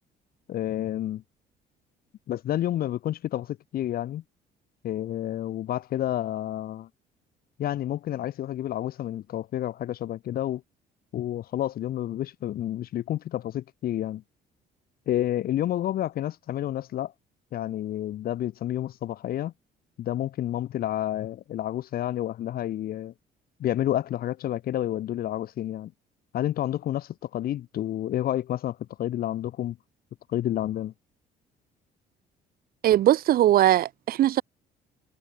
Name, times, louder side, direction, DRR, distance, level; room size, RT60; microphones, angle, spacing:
voice 1, 0.5-1.2 2.3-4.2 4.8-6.9 7.6-10.6 11.1-14.2 15.1-17.1 17.5-19.5 20.0-23.1 23.6-25.9 26.3-29.8 30.3-30.9, left 12 dB, 60° left, 1.9 m, -30 dB
voice 2, 32.8-34.4, right 13 dB, 60° right, 0.9 m, -20 dB
cardioid pair, 110°, 17 cm